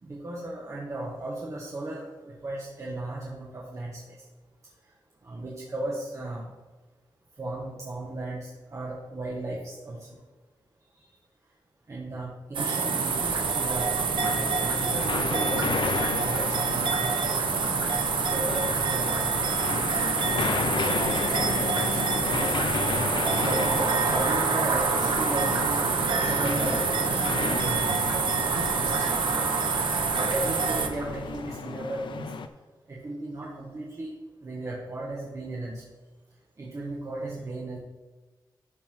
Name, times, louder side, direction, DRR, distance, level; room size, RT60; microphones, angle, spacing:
voice 1, 0.0-4.2 5.2-6.5 7.4-10.2 11.9-14.1 14.5-17.4 18.2-19.4 20.3-22.5 22.9-25.8 26.1-28.1 28.5-29.5 30.1-32.3 32.9-34.1 34.4-35.8 36.6-37.8, right 2 dB, 40° right, -5 dB, 1.6 m, -36 dB
sound 1, 12.5-30.9, right 5 dB, 90° right, 0.9 m, -26 dB
sound 2, 13.1-31.4, right 2 dB, 75° right, 1.9 m, -41 dB
sound 3, 14.2-32.5, left 5 dB, 75° left, 0.6 m, -33 dB
12.5 x 4.3 x 5.8 m, 1.2 s
wide cardioid pair, 155°, 8 cm